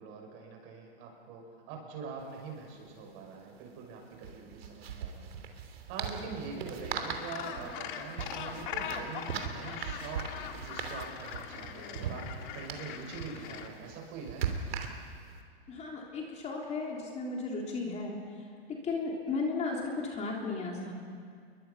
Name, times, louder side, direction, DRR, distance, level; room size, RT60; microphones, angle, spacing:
voice 1, 0.0-5.3 5.9-10.3 10.6-14.5, right 4 dB, 40° right, 1 dB, 6.5 m, -44 dB
sound 1, 2.2-2.3 2.5-2.7 4.1-15.3, right 7 dB, 70° right, 3.1 m, -40 dB
Gull seagull, 7.0-13.7, left 8 dB, 50° left, 2.2 m, -41 dB
voice 2, 15.7-18.2 18.8-20.9, left 3 dB, 20° left, -1 dB, 3.5 m, -35 dB
29.0 x 22.5 x 5.7 m, 2.1 s
hypercardioid pair, 130°, 31 cm